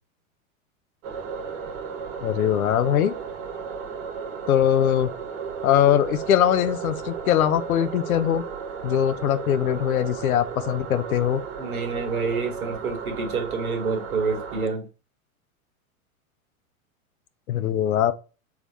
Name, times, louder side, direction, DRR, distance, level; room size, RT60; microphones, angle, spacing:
sound 1, 1.0-14.7, right 6 dB, 60° right, 1.4 m, -34 dB
voice 1, 2.2-3.1 4.5-5.1 5.6-8.4 8.8-11.4 17.5-18.1, left 10 dB, 80° left, 0.7 m, -21 dB
voice 2, 11.6-14.9, right 4 dB, 85° right, 1.4 m, -28 dB
3.6 x 3.4 x 3.9 m
hypercardioid pair, 95°, 42 cm